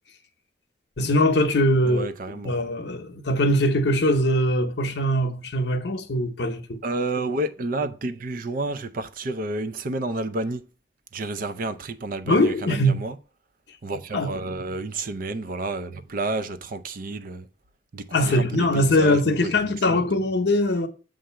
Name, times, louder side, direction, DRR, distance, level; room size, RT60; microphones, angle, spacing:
voice 1, 1.0-2.1 2.4-6.8 12.3-13.1 14.1-14.3 18.1-20.9, left 1 dB, 65° left, 0.8 m, -22 dB
voice 2, 1.8-2.6 6.8-10.7 11.1-13.2 13.8-17.5 17.9-19.5 19.9-20.1, right 2 dB, 50° right, 0.5 m, -30 dB
7.6 x 2.6 x 5.6 m
head